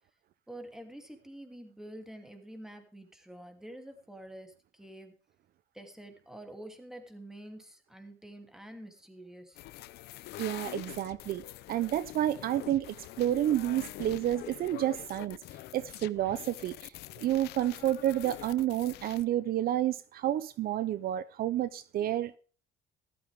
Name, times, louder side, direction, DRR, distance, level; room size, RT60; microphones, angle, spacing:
voice 1, 0.5-5.1 5.7-9.6, right 1 dB, 5° right, 2.8 m, -47 dB
sound 1, 9.6-19.2, left 16 dB, 80° left, 0.7 m, -45 dB
voice 2, 10.4-11.4 11.7-15.4 15.7-22.4, right 12 dB, 60° right, 0.6 m, -30 dB
14.5 x 12.5 x 3.5 m
cardioid pair, 110°, 17 cm